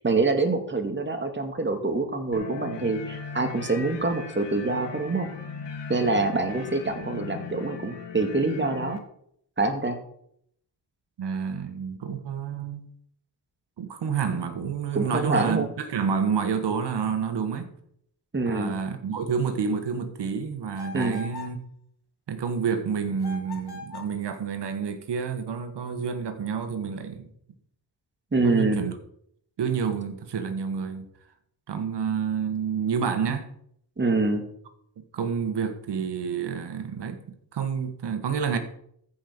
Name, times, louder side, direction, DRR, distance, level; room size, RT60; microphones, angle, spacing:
voice 1, 0.0-5.3 5.9-9.0 9.6-10.0 14.9-15.7 18.3-18.8 20.9-21.2 28.3-28.8 34.0-34.5, right 3 dB, 25° right, 2.2 m, -25 dB
sound 1, 2.3-9.0, left 6 dB, 85° left, 1.7 m, -38 dB
voice 2, 11.2-12.9 13.8-17.7 18.4-21.6 22.3-27.3 28.4-28.9 29.6-31.1 31.7-33.5 35.1-37.2 37.5-38.6, right 6 dB, 80° right, 1.8 m, -29 dB
sound 2, 20.8-21.6 23.2-24.2, left 4 dB, 70° left, 2.5 m, -40 dB
14.5 x 5.7 x 6.2 m
cardioid pair, 80°, 40 cm